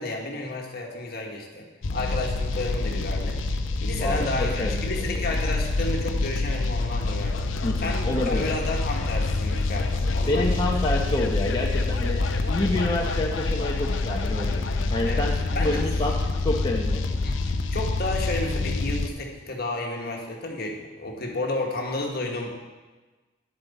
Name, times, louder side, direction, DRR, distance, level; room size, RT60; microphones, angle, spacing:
voice 1, 0.0-3.4 3.8-7.5 7.8-10.6 15.0-15.9 16.3-16.4 17.2-22.5, left 2 dB, 55° left, 1 dB, 1.4 m, -32 dB
sound 1, 1.8-19.1, left 3 dB, 75° left, 0.6 m, -26 dB
voice 2, 4.0-5.4 7.6-8.5 10.3-12.2 12.5-14.6 14.9-17.2, left 1 dB, 25° left, -2 dB, 0.7 m, -28 dB
9.9 x 7.3 x 4.1 m, 1.2 s
head